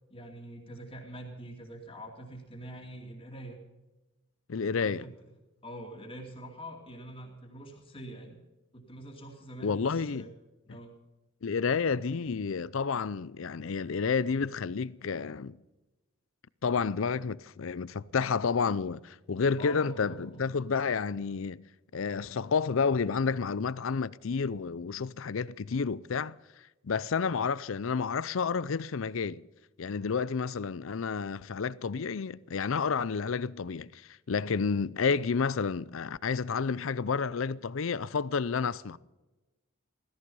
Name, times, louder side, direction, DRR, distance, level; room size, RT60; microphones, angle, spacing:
voice 1, 0.1-3.6 4.8-5.1 5.6-8.4 8.7-10.3 10.7-10.9 19.6-20.5, right 1 dB, 25° left, 2.4 m, -45 dB
voice 2, 4.5-5.1 9.6-10.3 10.7-10.8 11.4-15.6 16.6-21.6 21.9-26.4 26.8-29.4 29.8-39.0, left 5 dB, 65° left, 0.5 m, -30 dB
16.5 x 14.5 x 5.4 m
head